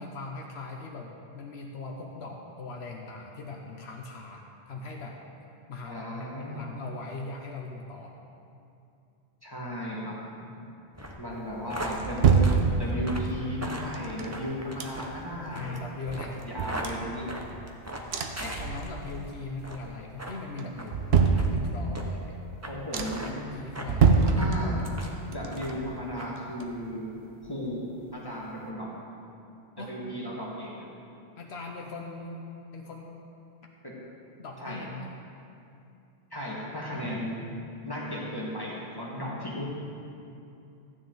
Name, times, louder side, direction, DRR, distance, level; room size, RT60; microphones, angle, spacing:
voice 1, 0.0-5.2 5.7-8.2 15.5-16.5 18.4-22.3 23.5-24.3 29.8-30.0 31.4-33.1 34.4-35.1, left 3 dB, 80° left, 1 dB, 1.1 m, -40 dB
voice 2, 5.9-6.7 9.4-10.2 11.2-15.8 16.5-17.3 22.7-23.4 24.3-24.8 25.3-27.1 27.4-27.8 28.1-28.9 29.8-30.9 33.8-33.9 34.6-34.8 36.3-37.6 37.8-39.7, equal, 20° left, -6 dB, 1.8 m, -35 dB
sound 1, 10.9-19.2 19.6-19.9 20.2-20.4 20.8-20.9 21.4-21.5 21.9-22.1 22.6-22.7 23.0-23.3 23.8-23.9 24.3-25.2 25.5-25.9 26.2-26.3, right 1 dB, 15° right, 0.9 m, -39 dB
sound 2, 11.5-13.2 13.9-15.4 15.7-15.8 16.1-17.7 18.1-19.3 19.6-20.1 20.6-22.0 22.5-22.6 22.9-23.4 23.8-25.0 25.3-27.1 27.4-27.5, right 5 dB, 75° right, 1.0 m, -26 dB
14.5 x 9.7 x 3.9 m, 2.7 s
omnidirectional pair, 1.1 m